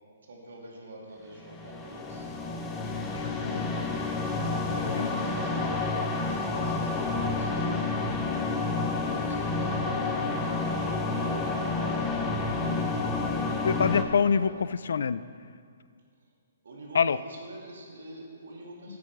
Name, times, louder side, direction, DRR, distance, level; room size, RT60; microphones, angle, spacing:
voice 1, 0.2-2.3 2.7-3.7 4.5-8.5 8.9-11.3 11.7-13.4 14.4-14.5 16.6-19.0, right 1 dB, 70° right, -2 dB, 2.5 m, -46 dB
sound 1, 1.4-14.0, left 3 dB, 10° left, 0.5 m, -29 dB
voice 2, 3.2-3.7 4.9-5.1 13.6-14.5 14.9-15.2 16.9-17.2 18.9-19.0, left 6 dB, 65° left, 16 dB, 0.3 m, -25 dB
9.9 x 8.5 x 4.7 m, 2.1 s
hypercardioid pair, 180°, 0 cm